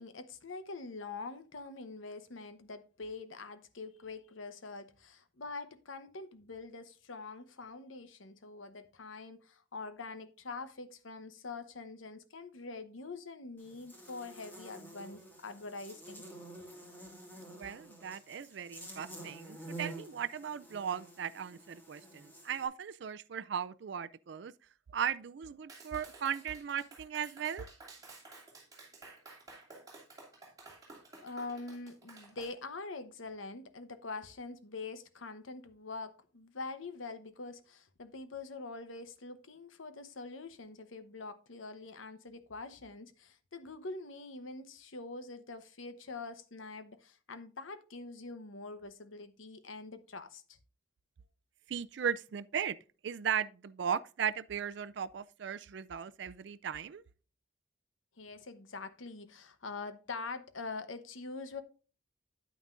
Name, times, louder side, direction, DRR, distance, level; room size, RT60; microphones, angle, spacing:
voice 1, 0.0-16.2 31.2-50.6 58.2-61.6, left 3 dB, 90° left, 1.0 m, -44 dB
Buzz, 13.6-22.6, right 2 dB, 10° left, 1.9 m, -49 dB
voice 2, 17.5-24.5 24.9-27.7 51.7-52.8 53.0-57.0, right 8 dB, 65° right, 0.4 m, -37 dB
Clapping, 25.7-32.5, right 3 dB, 20° right, 2.8 m, -53 dB
9.5 x 9.0 x 2.5 m
head